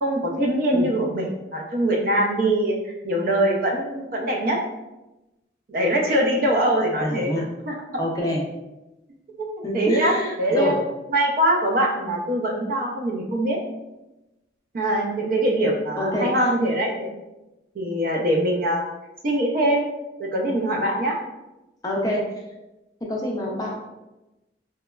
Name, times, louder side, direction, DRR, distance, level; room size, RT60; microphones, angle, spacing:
voice 1, 0.0-4.6 5.7-7.3 7.7-8.1 9.7-10.7 11.1-13.6 14.7-17.1 17.8-18.8 19.2-19.9 20.2-21.2, right 1 dB, 50° right, 0 dB, 0.4 m, -23 dB
voice 2, 7.0-7.5 8.0-8.4 9.6-10.8 16.0-16.3 21.8-22.3 23.1-23.8, left 1 dB, 20° left, -2 dB, 0.4 m, -26 dB
2.9 x 2.1 x 2.2 m, 0.99 s
head